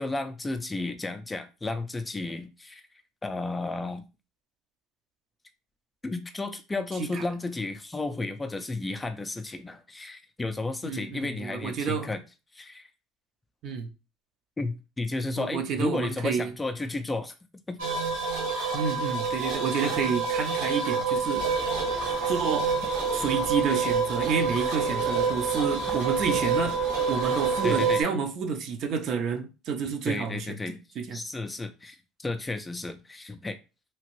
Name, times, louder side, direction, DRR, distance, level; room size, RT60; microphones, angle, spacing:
voice 1, 0.0-2.8 3.2-4.0 6.0-12.2 12.5-12.9 14.6-17.3 17.7-17.8 27.6-28.0 30.1-30.8 31.1-33.6, left 2 dB, 15° left, 0.4 m, -33 dB
voice 2, 10.8-12.2 13.6-13.9 15.4-16.5 18.7-21.4 22.3-22.7 23.1-26.8 27.1-31.2, right 6 dB, 55° right, 0.6 m, -30 dB
sound 1, 17.8-28.0, right 5 dB, 90° right, 1.1 m, -27 dB
sound 2, 21.3-27.8, right 1 dB, 15° right, 0.7 m, -40 dB
2.9 x 2.5 x 3.0 m
supercardioid pair, 105°, 0 cm